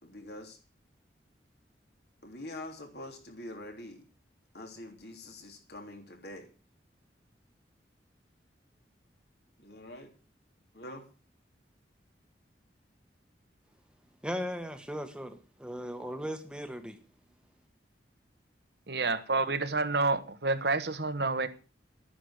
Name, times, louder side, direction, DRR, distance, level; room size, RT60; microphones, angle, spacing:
voice 1, 0.0-0.6 2.2-4.0 4.5-6.5 9.6-10.1 10.7-11.0, left 1 dB, 60° left, 3.4 m, -45 dB
voice 2, 14.2-17.0, equal, 5° right, 1.3 m, -37 dB
voice 3, 18.9-21.5, right 3 dB, 60° right, 1.2 m, -29 dB
12.5 x 10.0 x 6.5 m
head